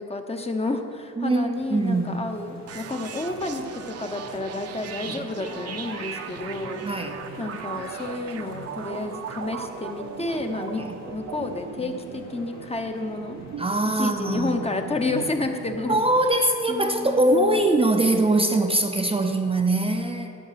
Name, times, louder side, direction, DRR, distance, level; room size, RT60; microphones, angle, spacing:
voice 1, 0.0-6.8 7.4-13.4 14.0-16.0 16.7-17.6, left 2 dB, 20° left, 5 dB, 0.9 m, -30 dB
voice 2, 1.2-2.4 5.1-5.2 6.8-7.2 10.8-11.0 13.6-14.7 15.9-20.4, right 2 dB, 20° right, 3 dB, 0.7 m, -22 dB
sound 1, 1.5-18.4, left 2 dB, 65° left, 2.2 m, -47 dB
sound 2, 2.7-16.3, right 7 dB, 55° right, 0.8 m, -38 dB
12.0 x 7.2 x 5.8 m, 2.7 s
cardioid pair, 90°, 30 cm